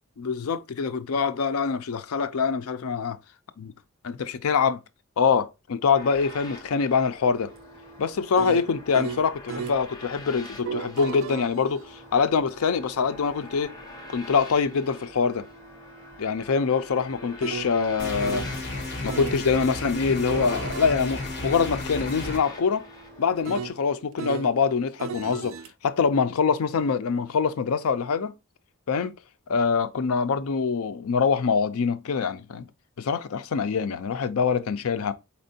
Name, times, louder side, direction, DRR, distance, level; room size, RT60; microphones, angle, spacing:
voice 1, 0.2-3.2 4.0-4.8 5.2-7.5 8.0-13.7 14.1-15.4 16.2-18.5 19.0-22.8 23.2-25.5 25.8-28.3 28.9-29.1 29.5-32.7 33.0-35.1, left 5 dB, 75° left, 0.5 m, -24 dB
sound 1, 5.9-23.7, left 2 dB, 20° left, 0.8 m, -46 dB
sound 2, 7.4-9.8 10.5-18.6 19.1-19.4 20.1-24.5 25.0-25.7, right 6 dB, 65° right, 0.3 m, -39 dB
sound 3, 18.0-22.4, left 2 dB, 50° left, 1.1 m, -33 dB
4.3 x 4.2 x 2.7 m
head